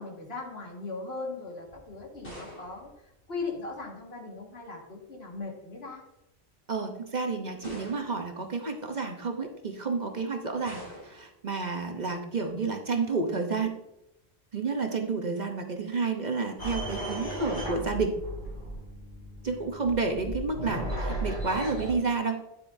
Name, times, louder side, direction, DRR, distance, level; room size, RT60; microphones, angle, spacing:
voice 1, 0.0-6.0, left 3 dB, 70° left, -1 dB, 2.1 m, -39 dB
sound 1, 1.6-4.0 5.0-5.5 6.3-6.4 7.6-8.4 10.7-11.4, equal, 85° left, 3.9 m, -47 dB
voice 2, 6.7-13.7 14.5-18.2 19.4-22.4, right 4 dB, 45° right, 4 dB, 0.9 m, -30 dB
sound 2, 16.6-21.9, right 1 dB, 45° left, 3.4 m, -35 dB
9.8 x 7.5 x 2.6 m, 0.87 s
omnidirectional pair, 1.1 m